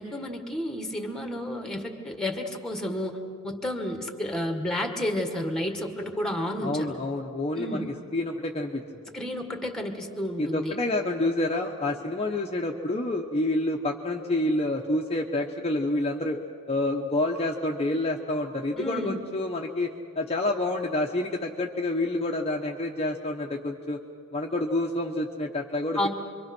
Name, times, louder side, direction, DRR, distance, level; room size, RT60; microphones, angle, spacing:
voice 1, 0.0-3.2 3.4-7.0 7.6-7.9 9.1-10.8 18.8-19.2 26.0-26.1, left 1 dB, 5° left, 4 dB, 1.8 m, -31 dB
voice 2, 6.6-7.9 8.1-8.8 10.4-16.4 16.7-24.0 24.3-26.1, left 2 dB, 30° left, 0 dB, 1.1 m, -28 dB
27.5 x 23.5 x 6.1 m, 2.3 s
head